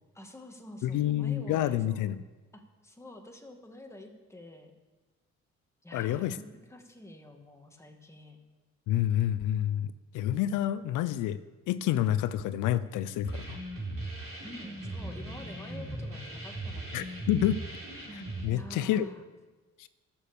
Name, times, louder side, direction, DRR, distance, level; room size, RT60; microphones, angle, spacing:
voice 1, 0.1-2.1 2.5-4.7 5.8-8.4 14.4-17.2 18.5-19.2, left 1 dB, 10° left, 3 dB, 1.8 m, -48 dB
voice 2, 0.8-2.2 5.9-6.3 8.9-11.4 11.7-13.6 16.9-17.6 18.1-19.1 19.8-19.9, left 12 dB, 90° left, 14 dB, 0.6 m, -28 dB
sound 1, 13.2-18.5, right 2 dB, 50° right, 3.5 m, -38 dB
12.0 x 7.2 x 7.0 m, 1.3 s
cardioid pair, 90°, 30 cm